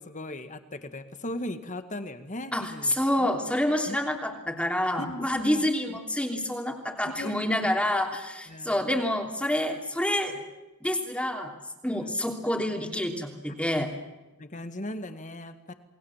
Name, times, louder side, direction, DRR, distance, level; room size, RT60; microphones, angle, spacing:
voice 1, 0.0-3.3 3.9-4.0 4.3-4.4 5.0-5.7 7.1-7.7 8.5-8.9 11.9-12.1 14.4-15.7, left 1 dB, 35° left, 9 dB, 1.9 m, -38 dB
voice 2, 2.5-10.4 10.8-11.5 11.8-13.9, left 1 dB, 5° left, 2 dB, 3.0 m, -28 dB
29.0 x 20.0 x 7.4 m, 1.1 s
head